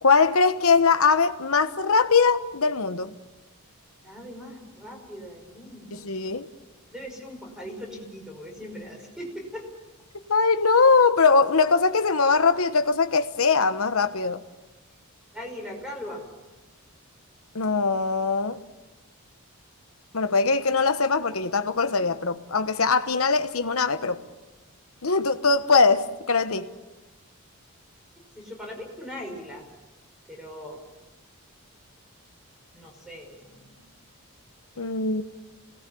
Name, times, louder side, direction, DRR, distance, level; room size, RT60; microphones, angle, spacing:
voice 1, 0.0-3.1 5.9-6.5 10.3-14.4 17.5-18.6 20.1-24.2 25.0-26.7 34.8-35.2, left 4 dB, 70° left, 1.1 m, -21 dB
voice 2, 4.0-6.1 6.9-9.7 15.3-16.3 26.5-26.7 28.4-29.7 30.3-30.8 32.7-33.8, equal, 5° right, 5.5 m, -40 dB
28.5 x 19.0 x 7.0 m
head